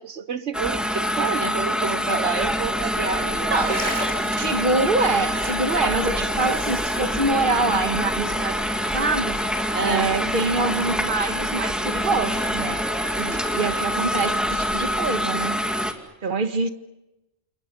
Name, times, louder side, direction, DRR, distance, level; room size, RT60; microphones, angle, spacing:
voice 1, 0.0-3.8 9.7-10.3 13.2-13.4, right 5 dB, 90° right, 1.6 m, -29 dB
sound 1, 0.5-15.9, equal, ahead, 2.4 m, -25 dB
sound 2, 2.3-15.1, right 1 dB, 35° right, 5.6 m, -37 dB
voice 2, 3.5-3.8 4.3-8.7 8.9-9.4 9.8-12.8 13.2-15.6 16.2-16.7, right 3 dB, 50° right, 1.7 m, -25 dB
29.5 x 29.0 x 5.5 m
omnidirectional pair, 1.1 m